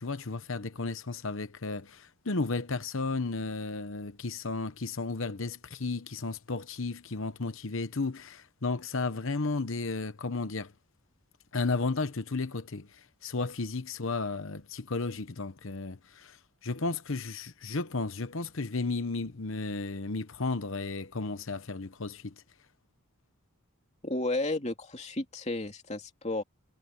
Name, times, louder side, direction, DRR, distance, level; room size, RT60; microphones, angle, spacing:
voice 1, 0.0-10.7 11.5-12.9 13.2-16.4 16.6-22.3, left 3 dB, 60° left, 1.0 m, -33 dB
voice 2, 24.0-26.4, left 2 dB, 30° left, 2.7 m, -32 dB
head